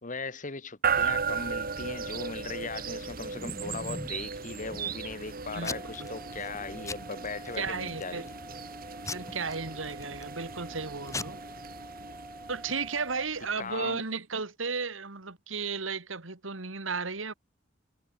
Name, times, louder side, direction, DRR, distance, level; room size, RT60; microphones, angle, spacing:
voice 1, 0.0-8.3 13.6-14.0, left 4 dB, 40° left, 1.9 m, -39 dB
sound 1, 0.8-13.8, right 6 dB, 50° right, 3.3 m, -36 dB
Packing tape duct tape / Tearing, 2.9-4.2 4.7-5.2 5.6-6.1 6.4-6.6 6.9-7.6 8.0-8.4 9.1-10.3 10.8-10.9 11.1-11.2, left 2 dB, 15° left, 3.8 m, -39 dB
voice 2, 5.5-6.3 7.6-8.2 9.1-11.4 12.5-17.3, right 4 dB, 80° right, 2.3 m, -34 dB
sound 2, 5.7-13.3, right 1 dB, 5° right, 7.3 m, -47 dB
head